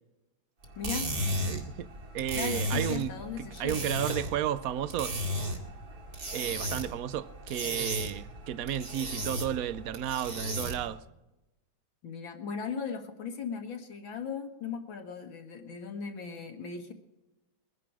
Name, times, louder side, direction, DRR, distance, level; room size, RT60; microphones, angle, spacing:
sound 1, 0.6-11.0, equal, 45° right, 2.8 m, -35 dB
voice 1, 0.8-1.1 2.3-3.9 12.0-16.9, left 6 dB, 70° left, 2.5 m, -38 dB
voice 2, 1.5-1.9 2.1-5.2 6.3-11.0, right 11 dB, 70° right, 0.8 m, -33 dB
22.0 x 11.0 x 4.8 m
omnidirectional pair, 2.2 m